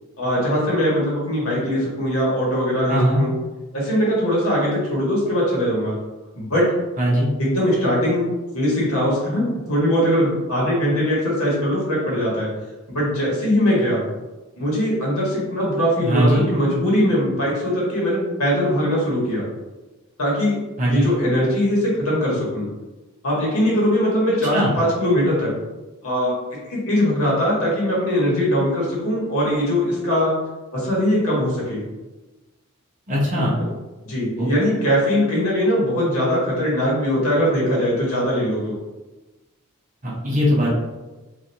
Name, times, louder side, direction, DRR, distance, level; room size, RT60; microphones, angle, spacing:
voice 1, 0.2-3.3 3.7-6.0 6.4-6.7 7.4-12.5 12.9-14.0 14.6-19.4 20.2-20.6 20.8-22.7 23.2-25.5 26.0-26.3 26.7-30.3 30.7-31.8 34.0-38.7, equal, 80° left, -5 dB, 1.3 m, -21 dB
voice 2, 2.9-3.2 7.0-7.3 16.0-16.5 20.8-21.1 24.5-24.7 33.1-33.6 34.4-34.5 40.2-40.7, equal, 35° right, -6 dB, 0.9 m, -19 dB
3.2 x 2.5 x 2.7 m, 1.1 s
head